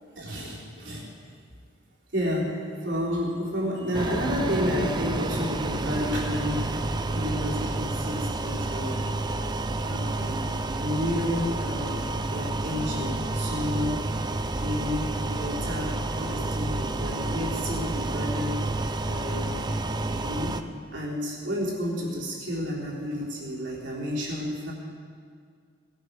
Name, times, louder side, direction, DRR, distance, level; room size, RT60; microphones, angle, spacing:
voice 1, 0.2-1.1 2.1-9.1 9.8-10.5 10.7-14.1 14.6-18.6 19.0-19.7 20.2-20.5 20.9-24.7, equal, 70° right, -4 dB, 3.7 m, -31 dB
sound 1, 3.9-20.6, right 2 dB, 25° right, 0.5 m, -30 dB
19.5 x 11.5 x 5.2 m, 2.1 s
head